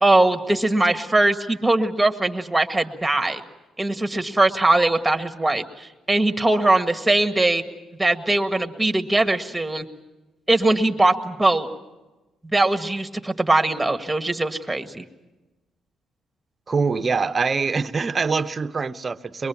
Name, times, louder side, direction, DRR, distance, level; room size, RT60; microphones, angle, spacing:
voice 1, 0.0-3.4 3.8-7.6 8.0-9.9 10.5-11.7 12.5-15.0, right 2 dB, 10° right, 6 dB, 1.7 m, -21 dB
voice 2, 16.7-19.5, right 4 dB, 35° right, 11 dB, 0.8 m, -24 dB
23.0 x 23.0 x 7.1 m, 1.1 s
cardioid pair, 90°, 0 cm